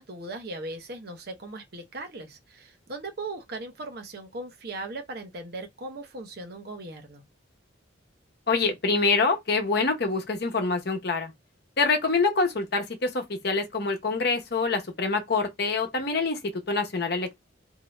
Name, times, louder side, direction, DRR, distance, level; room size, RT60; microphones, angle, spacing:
voice 1, 0.0-7.2, right 2 dB, 50° right, 0.8 m, -38 dB
voice 2, 8.5-11.3 11.8-17.4, left 4 dB, 55° left, 0.8 m, -26 dB
2.7 x 2.5 x 3.1 m
head